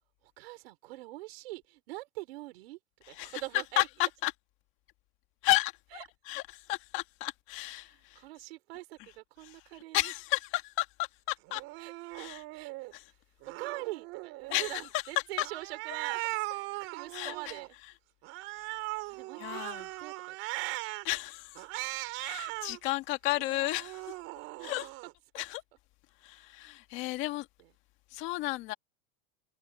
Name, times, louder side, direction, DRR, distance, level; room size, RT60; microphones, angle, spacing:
voice 1, 0.2-2.8 3.1-3.9 5.9-6.1 7.8-10.1 11.8-12.2 12.5-12.9 13.6-16.2 16.5-17.8 19.1-20.6 24.6-24.7 26.6-26.7, right 19 dB, 75° right, 4.4 m, -44 dB
voice 2, 3.1-3.4 3.8-4.3 5.4-5.7 6.3-8.2 9.4-9.6 9.9-11.6 12.1-12.4 12.9-13.1 14.5-14.8 15.4-15.5 17.1-17.5 18.6-18.8 19.4-19.9 21.0-21.6 22.1-24.1 24.6-24.9 25.3-25.6 26.2-27.5 28.1-28.7, left 19 dB, 40° left, 1.7 m, -33 dB
Cat, 11.5-12.9 13.4-14.8 15.4-17.7 18.2-21.0 21.6-22.8 23.3-25.1, right 23 dB, 45° right, 4.1 m, -39 dB
supercardioid pair, 165°, 31 cm